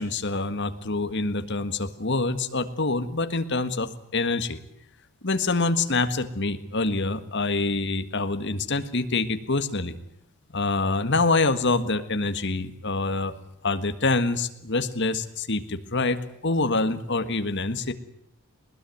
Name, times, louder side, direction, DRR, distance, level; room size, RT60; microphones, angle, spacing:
voice 1, 0.0-4.6 5.2-9.9 10.5-13.3 13.6-17.9, left 3 dB, 50° left, 9 dB, 1.7 m, -26 dB
20.5 x 20.5 x 9.4 m, 0.75 s
head